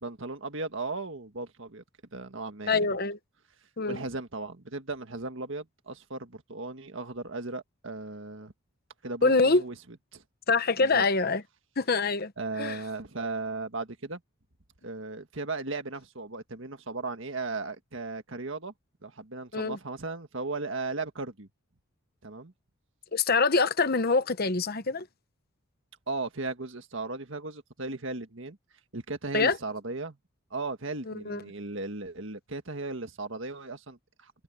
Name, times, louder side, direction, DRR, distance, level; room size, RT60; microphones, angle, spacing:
voice 1, 0.0-1.8 2.1-2.9 3.9-8.5 9.0-9.7 10.1-10.2 10.8-11.0 12.4-14.2 14.8-18.7 19.0-21.5 22.2-22.5 26.1-28.6 28.9-30.2 30.5-34.3, right 3 dB, 60° right, 1.8 m, -36 dB
voice 2, 2.7-3.2 3.8-4.0 9.2-9.6 10.5-11.4 11.8-12.3 12.6-12.8 19.5-19.8 23.1-25.1 29.3-29.6 31.1-31.4, left 4 dB, 45° left, 1.0 m, -25 dB
head